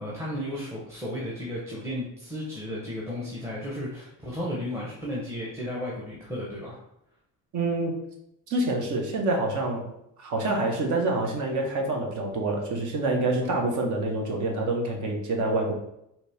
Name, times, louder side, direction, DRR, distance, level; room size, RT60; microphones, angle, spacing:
voice 1, 0.0-6.8 13.4-13.6, left 1 dB, 10° right, -5 dB, 0.8 m, -34 dB
voice 2, 7.5-8.0 8.5-9.8 10.2-15.7, right 2 dB, 60° right, 1 dB, 1.1 m, -27 dB
4.1 x 3.0 x 3.4 m, 0.80 s
cardioid pair, 120°, 34 cm